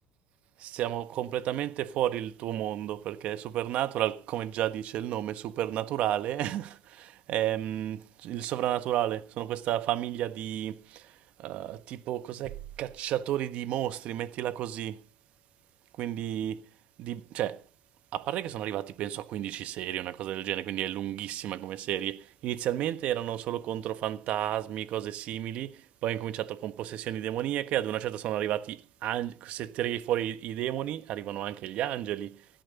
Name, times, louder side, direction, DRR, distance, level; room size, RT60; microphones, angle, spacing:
voice 1, 0.6-11.0 11.4-15.0 16.0-16.6 17.0-17.6 18.1-25.7 26.0-32.4, right 12 dB, 55° right, 1.3 m, -32 dB
16.5 x 13.0 x 4.0 m
cardioid pair, 120°, 3 cm